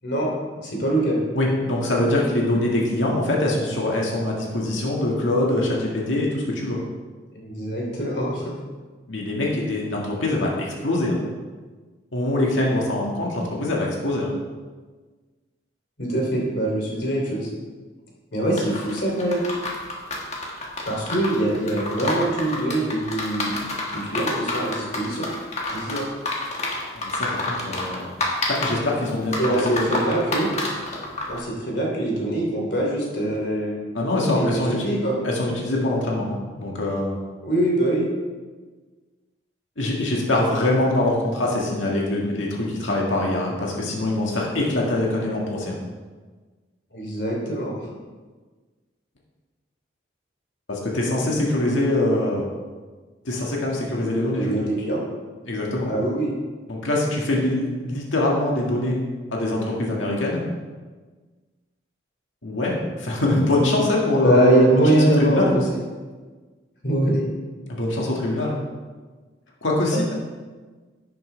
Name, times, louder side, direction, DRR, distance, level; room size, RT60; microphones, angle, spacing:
voice 1, 0.5-1.2 7.3-8.5 16.0-17.5 18.3-19.4 20.9-23.7 23.9-25.3 25.7-26.0 29.4-30.5 31.3-33.8 34.3-35.2 37.4-38.0 46.9-47.9 54.3-55.0 55.9-56.3 64.2-65.6 66.8-67.1, right 1 dB, 65° left, -2 dB, 3.1 m, -23 dB
voice 2, 1.3-6.8 9.1-11.2 12.1-14.3 27.0-28.1 28.5-29.9 33.9-34.8 35.2-37.2 39.8-45.8 50.7-52.5 53.2-54.6 55.5-55.9 56.7-59.0 59.3-60.4 62.4-65.5 67.7-68.6 69.6-70.1, left 1 dB, 85° left, -3 dB, 1.9 m, -23 dB
sound 1, 18.5-31.4, left 2 dB, 35° left, 1.6 m, -29 dB
11.5 x 9.1 x 3.4 m, 1.4 s
head